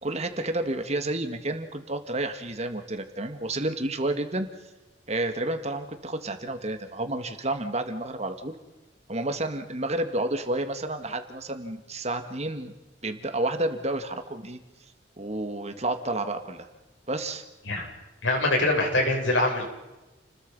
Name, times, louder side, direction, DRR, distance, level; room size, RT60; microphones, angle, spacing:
voice 1, 0.0-4.5 5.1-8.6 9.1-12.7 13.0-14.6 15.2-16.7 17.1-17.4, right 2 dB, 35° right, 7 dB, 2.1 m, -30 dB
voice 2, 18.2-19.7, left 2 dB, 85° left, 0 dB, 7.7 m, -24 dB
30.0 x 21.5 x 5.6 m, 1.1 s
head